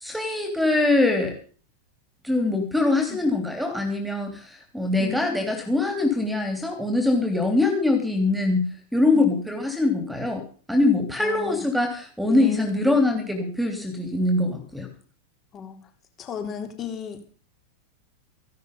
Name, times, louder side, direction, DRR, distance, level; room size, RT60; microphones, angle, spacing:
voice 1, 0.0-1.4 2.2-10.4 10.7-14.9, left 2 dB, ahead, 6 dB, 3.1 m, -23 dB
voice 2, 11.2-11.6 12.3-12.9 15.5-15.8 16.2-17.3, left 7 dB, 30° left, 5 dB, 3.5 m, -34 dB
15.5 x 12.5 x 5.5 m, 0.42 s
figure-of-eight pair, 90°, 0 cm